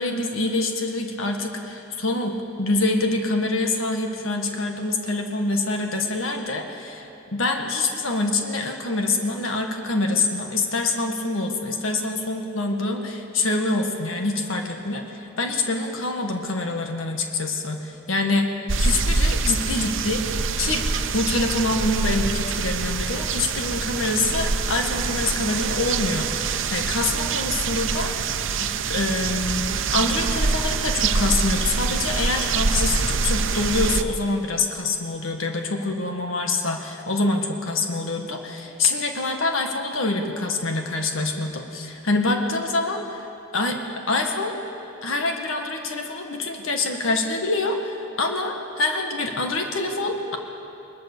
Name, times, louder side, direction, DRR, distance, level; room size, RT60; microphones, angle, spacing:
voice 1, 0.0-18.5 18.8-20.3 20.6-20.9 21.1-43.3 43.5-43.8 44.1-44.6 45.0-50.4, left 2 dB, 80° left, 3 dB, 1.8 m, -25 dB
sound 1, 18.7-34.0, right 4 dB, 70° right, 0.9 m, -25 dB
21.0 x 20.5 x 6.9 m, 2.8 s
head